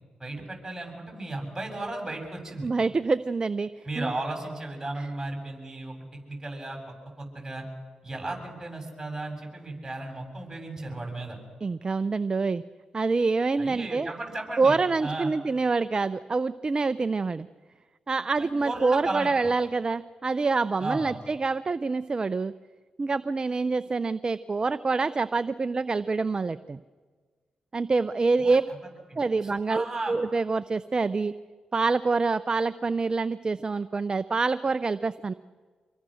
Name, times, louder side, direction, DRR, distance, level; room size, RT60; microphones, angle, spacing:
voice 1, 0.2-2.7 3.8-7.6 8.0-11.4 13.6-15.3 18.4-19.5 20.8-21.2 28.4-28.6 29.1-30.2, right 2 dB, 20° right, 2 dB, 7.5 m, -35 dB
voice 2, 2.6-3.7 4.0-4.1 5.0-5.1 11.6-12.6 12.9-14.1 14.6-17.5 18.1-22.5 23.0-26.8 27.7-28.6 29.2-31.4 31.7-35.3, right 4 dB, 40° right, 14 dB, 0.6 m, -26 dB
26.5 x 22.0 x 6.5 m, 1.5 s
supercardioid pair, 55°, 2 cm